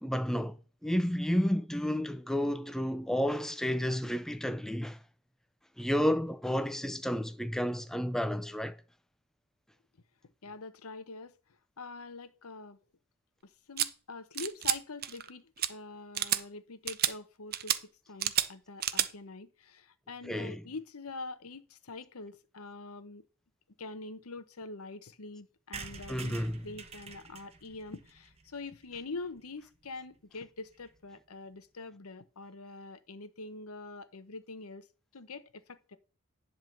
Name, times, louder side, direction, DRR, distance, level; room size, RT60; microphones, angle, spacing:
voice 1, 0.0-5.0 5.8-8.8 20.2-20.6 26.1-26.6, equal, ahead, 0.4 m, -31 dB
voice 2, 10.4-11.4 11.8-12.8 13.4-23.3 23.8-34.9 35.1-36.0, left 3 dB, 85° left, 0.9 m, -45 dB
sound 1, 13.8-13.9 14.4-14.8 15.0-15.3 15.6-15.7 16.1-16.4 16.9-17.1 17.5-17.8 18.2-18.5 18.8-19.1, right 12 dB, 45° right, 0.6 m, -29 dB
sound 2, 25.7-29.4 29.8-29.9 30.1-30.2 30.4-30.5 30.7-31.0, right 4 dB, 30° right, 1.1 m, -47 dB
11.0 x 3.7 x 6.6 m
head